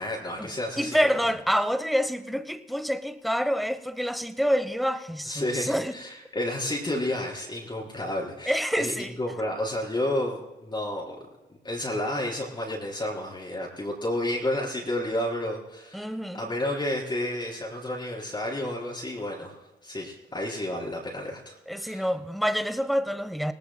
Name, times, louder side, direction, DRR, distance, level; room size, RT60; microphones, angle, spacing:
voice 1, 0.0-1.1 5.3-11.2 11.6-22.1, left 1 dB, 25° left, 4.2 m, -31 dB
voice 2, 0.8-6.0 8.5-9.1 15.9-16.5 21.7-23.5, equal, ahead, 0.8 m, -27 dB
26.5 x 18.0 x 2.2 m
cardioid pair, 90°, 20 cm